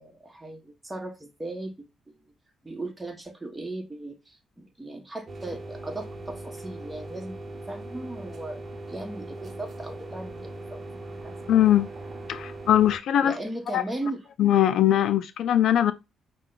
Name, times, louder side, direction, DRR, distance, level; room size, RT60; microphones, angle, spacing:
voice 1, 0.0-2.3 2.6-7.4 7.7-8.6 8.9-11.3 13.2-14.2, right 2 dB, 10° right, 1.1 m, -37 dB
sound 1, 5.3-13.0, right 2 dB, 40° right, 0.9 m, -40 dB
voice 2, 11.5-11.9 12.3-13.4 13.7-13.8 14.4-15.9, left 11 dB, 70° left, 0.3 m, -21 dB
5.4 x 2.2 x 3.8 m
cardioid pair, 90°, 0 cm